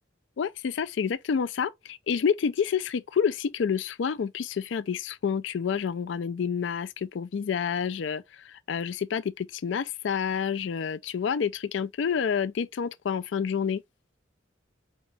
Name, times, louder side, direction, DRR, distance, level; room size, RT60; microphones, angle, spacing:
voice 1, 0.4-13.8, left 7 dB, 75° left, 0.4 m, -29 dB
4.4 x 2.9 x 3.9 m
head